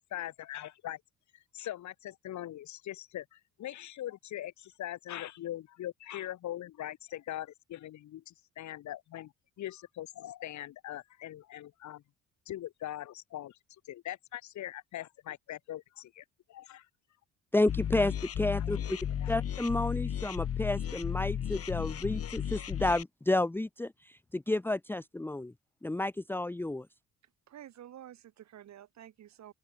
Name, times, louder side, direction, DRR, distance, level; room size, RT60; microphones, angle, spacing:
voice 1, 0.1-1.0 1.3-9.3 9.6-12.0 12.5-13.6 13.8-16.9 18.6-19.4, left 13 dB, 70° left, 3.7 m, -42 dB
voice 2, 17.5-19.0 19.3-25.5 25.8-26.9, left 2 dB, 5° left, 0.9 m, -31 dB
sound 1, 17.7-23.0, left 9 dB, 50° left, 2.0 m, -34 dB
voice 3, 27.5-29.5, right 11 dB, 65° right, 5.5 m, -50 dB
open air
cardioid pair, 85°, 30 cm